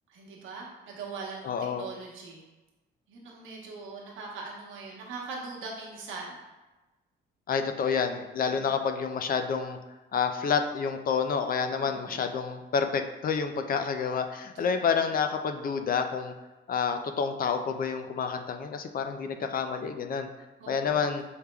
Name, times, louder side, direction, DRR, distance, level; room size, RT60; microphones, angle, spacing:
voice 1, 0.1-2.4 3.1-6.4 8.4-8.6 11.8-12.3 14.5-15.1 19.2-19.5 20.6-21.0, right 4 dB, 85° right, -3 dB, 1.1 m, -41 dB
voice 2, 1.4-1.9 7.5-9.8 10.1-16.3 16.7-20.3 20.7-21.2, left 6 dB, 45° left, 7 dB, 0.4 m, -29 dB
6.3 x 3.5 x 2.3 m, 1.1 s
cardioid pair, 90°, 20 cm